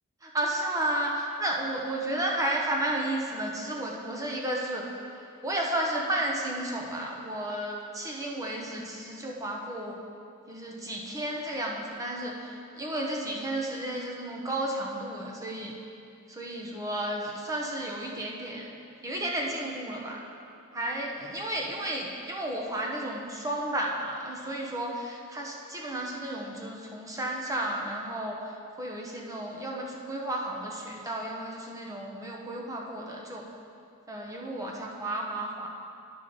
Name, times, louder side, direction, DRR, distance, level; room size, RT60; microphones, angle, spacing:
voice 1, 0.2-4.8 5.1-10.0 10.5-15.8 16.3-18.7 19.0-20.2 20.7-28.4 28.8-33.4 34.1-35.7, right 1 dB, 15° right, -2 dB, 0.9 m, -32 dB
12.0 x 5.1 x 3.9 m, 2.4 s
head